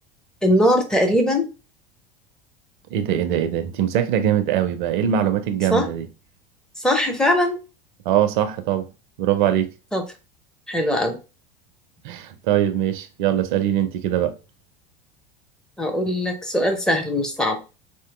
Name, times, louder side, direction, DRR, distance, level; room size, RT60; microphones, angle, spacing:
voice 1, 0.4-1.5 5.7-5.9 6.8-7.6 9.9-10.0 10.7-11.2 15.8-17.6, equal, ahead, 0.7 m, -20 dB
voice 2, 2.9-6.1 8.1-8.9 9.2-9.7 12.0-14.3, right 10 dB, 55° right, 0.5 m, -22 dB
4.3 x 2.5 x 2.4 m
figure-of-eight pair, 75°, 29 cm